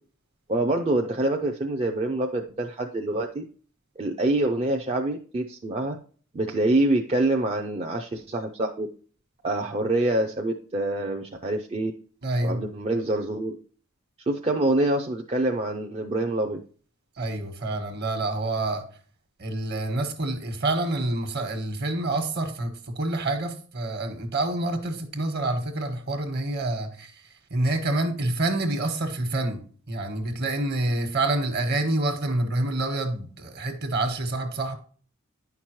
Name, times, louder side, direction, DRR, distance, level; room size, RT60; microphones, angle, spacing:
voice 1, 0.5-3.4 4.0-6.0 6.3-8.9 9.4-11.9 12.4-13.6 14.3-16.6, right 2 dB, 30° right, 0.5 m, -26 dB
voice 2, 12.2-12.6 17.2-18.9 19.4-27.2 27.5-34.7, right 2 dB, 50° right, 1.3 m, -27 dB
9.6 x 5.8 x 3.1 m
head